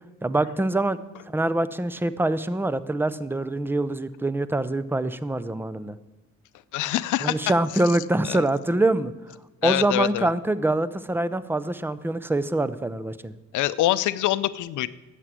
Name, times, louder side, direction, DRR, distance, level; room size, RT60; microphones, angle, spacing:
voice 1, 0.2-1.0 1.3-6.0 7.2-9.4 9.6-13.3, right 2 dB, 5° right, 15 dB, 0.6 m, -25 dB
voice 2, 6.7-7.4 8.2-8.4 9.6-10.3 13.5-14.9, left 15 dB, 85° left, 15 dB, 0.6 m, -24 dB
11.0 x 8.3 x 7.6 m, 1.2 s
cardioid pair, 90°, 30 cm